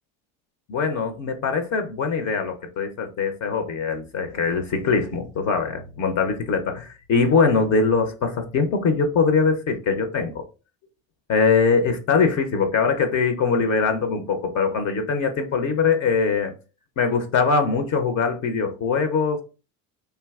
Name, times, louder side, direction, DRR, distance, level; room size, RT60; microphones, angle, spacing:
voice 1, 0.7-10.5 11.3-16.5 17.0-19.4, left 5 dB, 45° left, 0.6 m, -22 dB
3.3 x 2.6 x 2.3 m
supercardioid pair, 85°, 40 cm